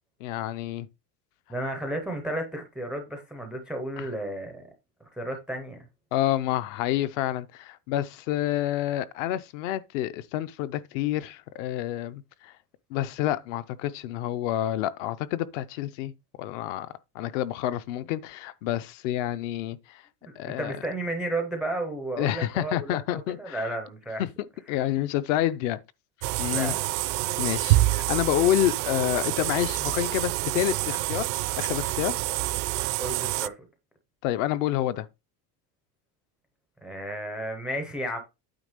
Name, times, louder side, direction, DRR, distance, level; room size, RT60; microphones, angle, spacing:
voice 1, 0.2-0.9 4.0-4.1 6.1-12.5 12.9-16.1 16.4-16.9 17.1-20.0 20.4-20.8 22.2-23.7 24.2-24.3 24.7-25.8 26.4-26.7 27.4-31.3 31.6-32.2 34.2-35.1, left 13 dB, 55° left, 0.6 m, -28 dB
voice 2, 1.5-4.6 5.1-5.8 20.2-24.2 26.5-26.9 33.0-33.6 36.8-38.2, right 1 dB, ahead, 0.4 m, -33 dB
sound 1, 26.2-33.5, right 18 dB, 70° right, 0.6 m, -27 dB
9.0 x 3.2 x 6.6 m
cardioid pair, 175°, 46 cm